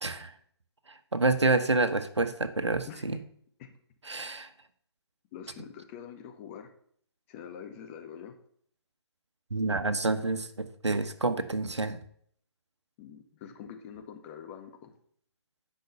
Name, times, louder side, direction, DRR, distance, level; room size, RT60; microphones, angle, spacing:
voice 1, 0.0-0.3 1.1-3.2 4.0-4.5 9.5-12.0, right 3 dB, 90° right, 11 dB, 1.1 m, -28 dB
voice 2, 5.3-6.7 7.3-8.3 13.0-15.0, left 8 dB, 30° left, 4 dB, 1.6 m, -45 dB
10.5 x 5.4 x 6.8 m, 0.63 s
figure-of-eight pair, 135°, 14 cm